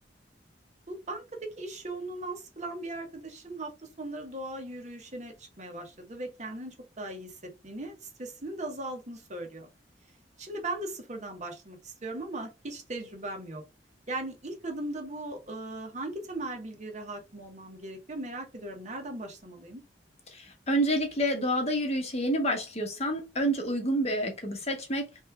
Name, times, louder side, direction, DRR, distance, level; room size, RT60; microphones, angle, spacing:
voice 1, 0.9-7.3 7.6-9.7 10.4-13.6 14.1-19.8, right 2 dB, 45° right, 1.2 m, -38 dB
voice 2, 20.3-25.1, right 1 dB, 40° left, 1.1 m, -28 dB
3.5 x 3.2 x 3.4 m
head